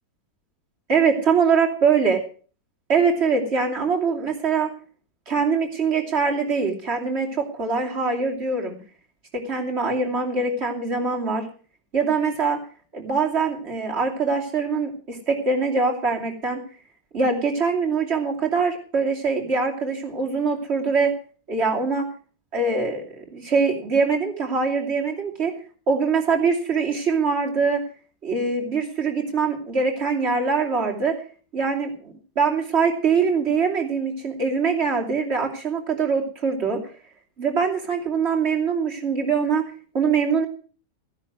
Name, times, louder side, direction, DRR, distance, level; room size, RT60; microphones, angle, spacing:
voice 1, 0.9-2.2 2.9-4.7 5.3-8.8 9.3-11.5 11.9-12.6 12.9-16.6 17.1-21.1 21.5-22.0 22.5-25.5 25.9-27.8 28.2-31.1 31.5-36.8 37.4-40.5, right 5 dB, 35° right, 1 dB, 3.0 m, -23 dB
15.0 x 10.5 x 6.1 m, 0.40 s
omnidirectional pair, 1.9 m